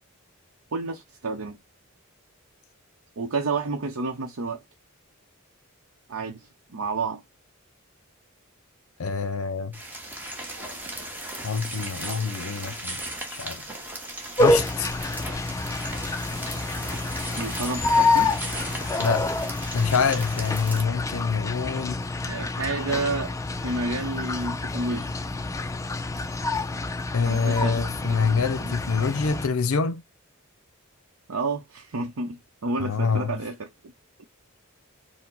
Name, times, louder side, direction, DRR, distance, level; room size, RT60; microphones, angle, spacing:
voice 1, 0.7-1.6 3.2-4.6 6.1-7.2 10.5-10.8 17.4-18.4 22.3-25.2 27.2-28.7 31.3-33.9, right 3 dB, 75° right, 0.7 m, -30 dB
voice 2, 9.0-9.7 11.4-13.0 13.4-13.6 14.4-14.9 19.0-19.3 19.7-22.1 27.1-30.0 32.8-33.3, left 5 dB, 75° left, 0.6 m, -26 dB
sound 1, 9.7-20.8, right 1 dB, 10° right, 1.0 m, -36 dB
sound 2, 14.4-29.5, left 2 dB, 15° left, 0.3 m, -27 dB
4.6 x 2.1 x 3.8 m
head